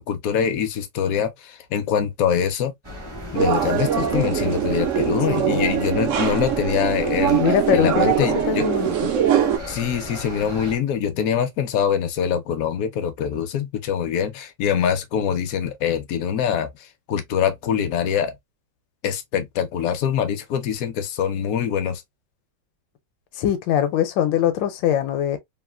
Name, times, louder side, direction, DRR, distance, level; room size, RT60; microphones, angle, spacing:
voice 1, 0.0-2.7 3.3-7.4 7.7-8.6 9.7-16.7 17.1-18.3 19.0-22.0, left 8 dB, 70° left, 0.8 m, -24 dB
sound 1, 2.8-10.8, equal, 25° right, 0.5 m, -36 dB
sound 2, 3.3-9.6, right 9 dB, 85° right, 0.6 m, -22 dB
voice 2, 7.4-9.1 23.4-25.4, left 10 dB, 85° left, 1.3 m, -22 dB
3.1 x 2.4 x 2.2 m
omnidirectional pair, 2.0 m